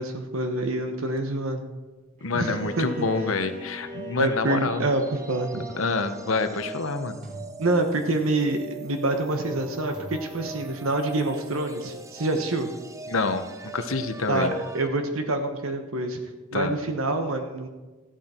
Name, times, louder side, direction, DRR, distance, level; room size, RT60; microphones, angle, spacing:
voice 1, 0.0-1.6 2.3-3.0 4.2-5.0 5.3-5.7 7.6-12.7 14.3-16.2 16.5-17.7, right 2 dB, 80° right, 5 dB, 1.2 m, -27 dB
voice 2, 2.2-4.8 5.8-7.2 13.1-14.5 16.5-16.8, left 3 dB, 75° left, 8 dB, 1.0 m, -27 dB
Bowed string instrument, 2.2-7.2, left 1 dB, 40° right, 2.1 m, -42 dB
sound 1, 3.6-14.9, right 2 dB, 15° right, 0.6 m, -40 dB
sound 2, 7.2-8.4 9.9-11.1, equal, 60° right, 4.3 m, -45 dB
14.5 x 11.5 x 4.4 m, 1.2 s
head